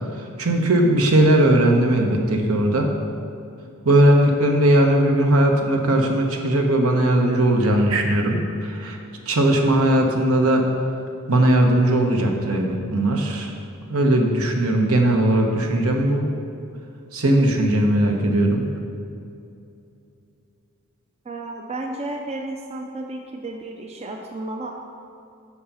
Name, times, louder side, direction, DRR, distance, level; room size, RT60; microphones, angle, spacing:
voice 1, 0.4-2.9 3.8-9.0 9.3-10.6 11.3-13.5 13.9-16.3 17.1-18.7, right 1 dB, 70° right, 2 dB, 1.1 m, -18 dB
voice 2, 21.2-24.7, right 2 dB, 30° right, 2 dB, 0.5 m, -32 dB
8.4 x 5.7 x 5.5 m, 2.6 s
head